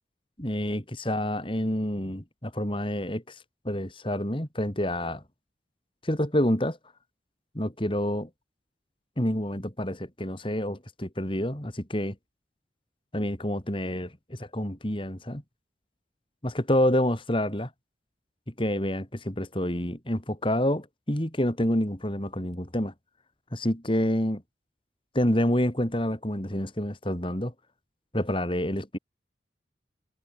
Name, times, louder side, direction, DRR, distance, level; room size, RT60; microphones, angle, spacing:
voice 1, 0.4-3.4 3.7-5.2 6.0-6.8 7.6-8.3 9.2-12.2 13.1-15.4 16.4-17.7 18.6-22.9 23.5-24.4 25.2-27.5 28.1-29.0, left 1 dB, 30° left, 3.4 m, -28 dB
head